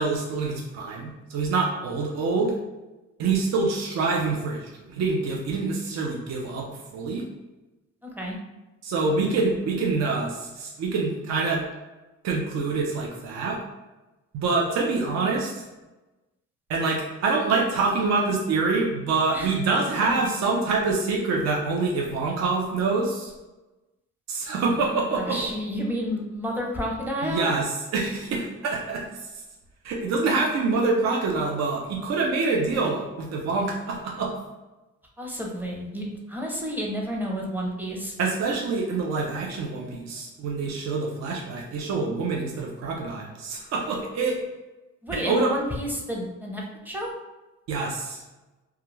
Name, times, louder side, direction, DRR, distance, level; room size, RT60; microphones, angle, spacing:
voice 1, 0.0-2.5 3.2-7.2 8.8-11.6 12.2-13.6 14.3-15.6 16.7-23.3 24.3-25.4 27.2-27.7 27.9-29.2 29.8-34.3 38.2-44.4 45.1-45.5 47.7-48.2, right 3 dB, 60° right, -1 dB, 0.6 m, -26 dB
voice 2, 8.0-8.4 19.3-19.5 19.8-20.1 25.1-27.5 35.2-38.1 45.0-47.1, equal, 5° right, -1 dB, 0.6 m, -30 dB
2.3 x 2.3 x 3.1 m, 1.1 s
cardioid pair, 90°, 30 cm